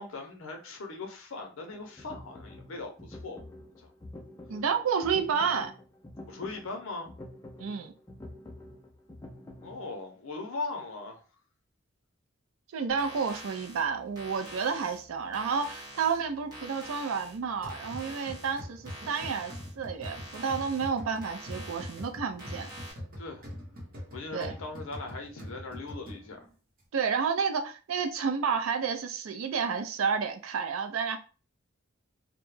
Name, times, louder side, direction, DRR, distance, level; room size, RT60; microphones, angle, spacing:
voice 1, 0.0-3.4 3.8-3.9 6.3-7.1 9.6-11.2 23.2-23.4 24.1-26.5, left 3 dB, 70° left, 0.6 m, -39 dB
sound 1, 1.7-9.8, left 1 dB, 15° left, 0.3 m, -47 dB
voice 2, 4.5-5.7 7.6-7.9 12.7-22.7 24.3-24.5 26.9-31.2, right 6 dB, 75° right, 0.4 m, -30 dB
sound 2, 12.9-22.9, equal, 20° right, 1.0 m, -47 dB
sound 3, 17.6-26.5, equal, 40° right, 0.7 m, -43 dB
2.1 x 2.0 x 3.1 m
head